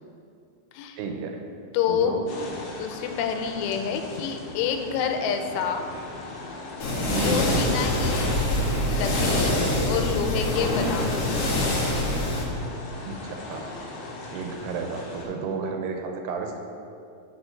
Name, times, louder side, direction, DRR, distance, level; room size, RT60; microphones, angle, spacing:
voice 1, 1.0-1.4 1.9-2.2 3.9-4.0 7.1-7.6 13.1-13.6 14.3-16.6, right 5 dB, 85° right, 3 dB, 2.7 m, -32 dB
voice 2, 1.7-2.2 2.8-5.9 7.2-8.3 8.9-9.5 9.9-11.2, left 7 dB, 90° left, 5 dB, 2.8 m, -28 dB
sound 1, 2.3-15.2, left 2 dB, 65° left, 3.2 m, -37 dB
sound 2, 6.8-12.4, left 1 dB, 50° left, 2.0 m, -25 dB
10.5 x 4.5 x 5.1 m, 2.5 s
omnidirectional pair, 4.8 m